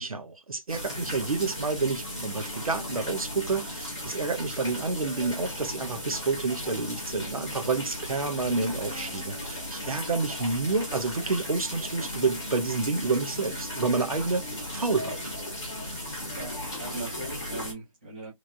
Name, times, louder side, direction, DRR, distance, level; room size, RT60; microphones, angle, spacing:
voice 1, 0.0-14.4 14.7-15.2, right 3 dB, 85° right, 0.9 m, -29 dB
sound 1, 0.7-17.7, left 1 dB, 5° left, 0.5 m, -36 dB
voice 2, 16.3-18.3, right 2 dB, 15° right, 1.0 m, -39 dB
3.3 x 2.6 x 2.4 m
hypercardioid pair, 175°, 18 cm